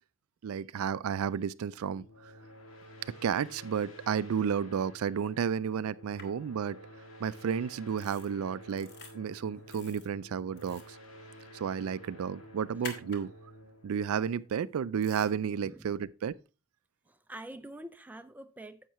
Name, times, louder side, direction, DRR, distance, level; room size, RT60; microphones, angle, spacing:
voice 1, 0.4-2.1 3.2-6.8 7.2-8.9 9.1-11.0 11.5-13.3 13.8-16.4, right 7 dB, 85° right, 0.4 m, -32 dB
sound 1, 1.8-15.2, equal, 70° left, 2.2 m, -51 dB
sound 2, 6.2-6.3 8.0-8.3 8.7-9.1 9.7-10.1 10.5-10.9 12.8-13.2 15.0-15.3, left 4 dB, 50° left, 1.6 m, -45 dB
voice 2, 15.6-15.9 17.1-18.8, right 1 dB, 10° right, 0.4 m, -46 dB
10.0 x 7.4 x 3.0 m
head